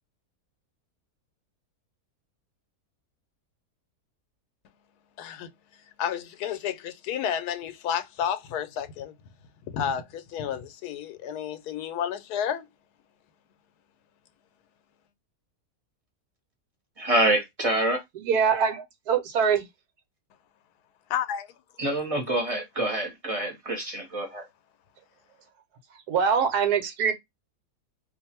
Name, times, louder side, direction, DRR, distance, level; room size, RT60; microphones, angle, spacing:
voice 1, 5.2-9.1 9.7-12.7 21.1-21.5, left 9 dB, 85° left, 1.1 m, -31 dB
voice 2, 17.0-18.0 21.8-24.4, right 1 dB, 25° right, 1.0 m, -26 dB
voice 3, 18.1-19.7 26.1-27.1, right 6 dB, 90° right, 1.3 m, -23 dB
2.6 x 2.5 x 4.2 m
omnidirectional pair, 1.6 m